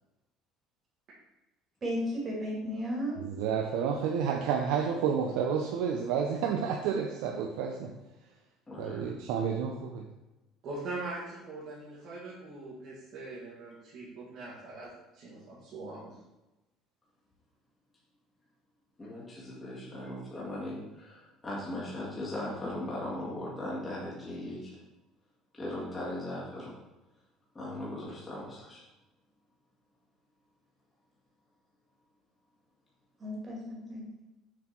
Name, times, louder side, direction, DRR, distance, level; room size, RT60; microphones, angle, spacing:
voice 1, 1.8-3.2 33.2-34.0, equal, 25° right, -3 dB, 2.3 m, -34 dB
voice 2, 3.2-7.9 8.8-10.1, right 7 dB, 90° right, 2 dB, 0.7 m, -30 dB
voice 3, 8.7-9.2 19.0-24.8 25.5-26.7 27.5-28.8, left 1 dB, 15° left, -7 dB, 2.0 m, -38 dB
voice 4, 10.6-16.1, right 2 dB, 50° right, -9 dB, 2.1 m, -42 dB
7.1 x 4.4 x 4.5 m, 1.0 s
cardioid pair, 150°, 0 cm